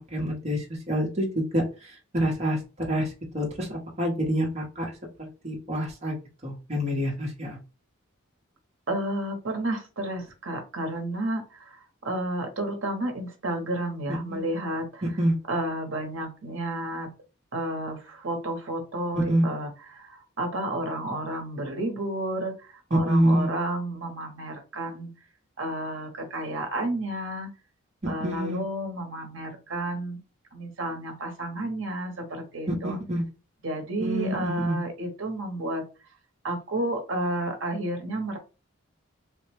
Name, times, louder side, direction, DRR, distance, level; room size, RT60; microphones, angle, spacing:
voice 1, 0.1-1.6 2.1-2.6 2.9-3.1 3.3-4.9 5.2-6.1 6.4-7.6 14.3-14.4 15.2-15.3 19.1-19.4 22.9-23.5 28.0-28.6 32.7-33.2 34.0-34.8, right 1 dB, 30° right, -2 dB, 0.8 m, -26 dB
voice 2, 8.9-15.1 15.5-17.1 17.5-25.1 25.6-27.5 28.1-30.2 30.5-33.0 33.6-35.8 36.4-38.4, right 1 dB, 60° right, 3 dB, 0.8 m, -31 dB
3.2 x 2.1 x 3.2 m, 0.32 s
head